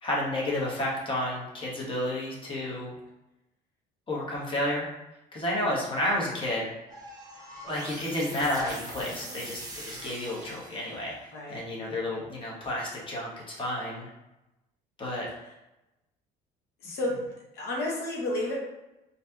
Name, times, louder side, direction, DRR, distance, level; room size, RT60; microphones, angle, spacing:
voice 1, 0.0-3.0 4.1-4.9 5.3-6.7 7.6-11.2 11.5-14.1 15.0-15.3, left 1 dB, 30° left, -5 dB, 1.1 m, -31 dB
sound 1, 6.9-11.2, right 2 dB, 20° right, 0.9 m, -42 dB
voice 2, 16.8-17.2 17.5-18.6, left 1 dB, 75° left, -3 dB, 0.8 m, -31 dB
4.1 x 2.7 x 2.3 m, 0.96 s
cardioid pair, 110°, 17 cm